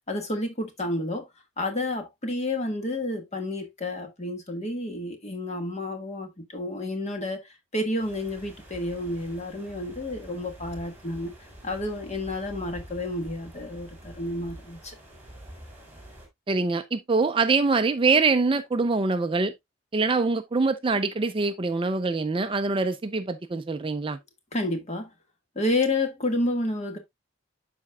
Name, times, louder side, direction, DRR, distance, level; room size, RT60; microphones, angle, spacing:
voice 1, 0.1-1.2 1.6-11.3 11.6-15.0 24.5-25.1 25.5-27.0, left 1 dB, 35° left, 1.6 m, -30 dB
sound 1, 8.0-16.3, right 1 dB, 10° right, 3.0 m, -46 dB
voice 2, 16.5-19.5 19.9-24.2, right 3 dB, 25° right, 0.4 m, -24 dB
12.0 x 4.3 x 2.2 m
head